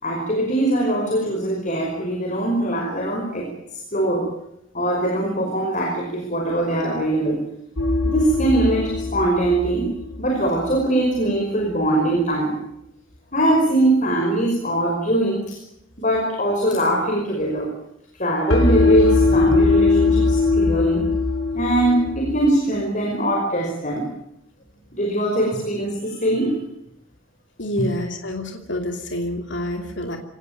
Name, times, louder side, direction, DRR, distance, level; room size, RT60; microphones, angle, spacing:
voice 1, 0.0-3.5 3.9-4.3 4.7-7.4 8.0-9.9 10.2-12.6 13.3-15.6 16.0-17.7 18.1-21.1 21.5-24.1 24.9-26.6, right 1 dB, 35° left, 1 dB, 5.4 m, -22 dB
sound 1, 7.8-10.9 18.5-22.5, left 3 dB, 80° left, 6.2 m, -20 dB
voice 2, 27.6-30.2, left 1 dB, 60° left, 4 dB, 2.8 m, -27 dB
25.5 x 18.0 x 9.4 m, 0.80 s
head